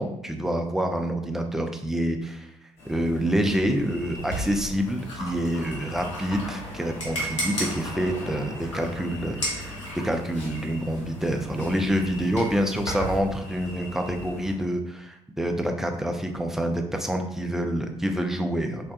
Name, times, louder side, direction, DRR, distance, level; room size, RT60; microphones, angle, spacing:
voice 1, 0.0-2.5 2.8-9.8 10.0-18.9, equal, 5° right, 4 dB, 0.3 m, -27 dB
sound 1, 2.8-14.5, left 1 dB, 45° left, 0.8 m, -41 dB
sound 2, 4.2-13.2, equal, 85° left, 0.5 m, -35 dB
2.4 x 2.1 x 2.6 m, 0.77 s
figure-of-eight pair, 45°, 15 cm